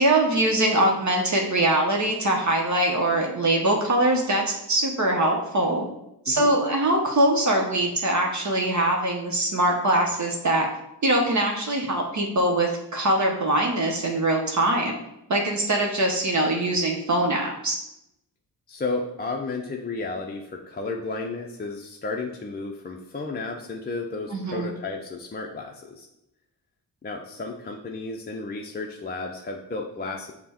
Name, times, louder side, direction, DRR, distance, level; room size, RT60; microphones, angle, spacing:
voice 1, 0.0-5.8 6.2-10.7 11.0-15.0 15.3-17.8 24.3-24.7, right 1 dB, 45° right, 1 dB, 0.9 m, -22 dB
voice 2, 18.7-26.1 27.0-30.3, left 3 dB, 25° left, 1 dB, 0.5 m, -33 dB
5.2 x 2.2 x 4.3 m, 0.84 s
supercardioid pair, 45°, 41 cm